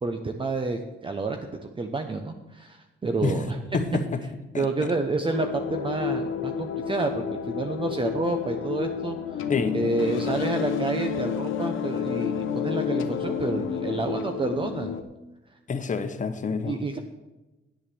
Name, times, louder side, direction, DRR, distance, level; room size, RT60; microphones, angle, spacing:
voice 1, 0.0-3.8 4.6-9.5 9.7-14.9 16.7-17.0, right 3 dB, 25° right, 5 dB, 0.8 m, -29 dB
voice 2, 3.7-4.2 4.5-4.6 9.5-9.7 15.7-16.8, left 4 dB, 40° left, 9 dB, 1.1 m, -27 dB
sound 1, 5.3-15.0, left 7 dB, 85° left, 0.8 m, -30 dB
10.0 x 7.2 x 6.8 m, 1.1 s
cardioid pair, 90°, 20 cm